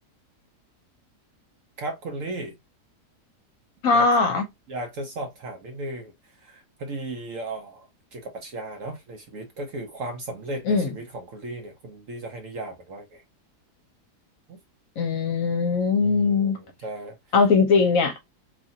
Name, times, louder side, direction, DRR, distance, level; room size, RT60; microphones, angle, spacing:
voice 1, 1.8-2.6 3.9-4.1 4.7-13.2 14.5-14.6 16.0-17.2, right 2 dB, 60° right, 0.9 m, -36 dB
voice 2, 3.8-4.4 10.7-10.9 15.0-16.6 17.3-18.2, left 4 dB, 65° left, 1.0 m, -20 dB
3.1 x 2.4 x 2.6 m
omnidirectional pair, 1.7 m